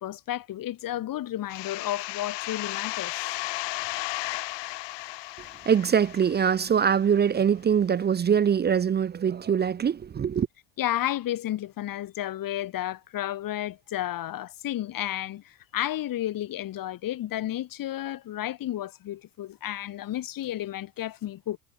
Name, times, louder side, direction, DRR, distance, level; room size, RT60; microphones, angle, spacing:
voice 1, 0.0-3.4 10.8-21.6, left 13 dB, 45° left, 1.8 m, -32 dB
sound 1, 1.5-7.0, left 21 dB, 65° left, 3.4 m, -34 dB
voice 2, 5.7-10.5, right 7 dB, 20° right, 0.6 m, -23 dB
supercardioid pair, 90°, 46 cm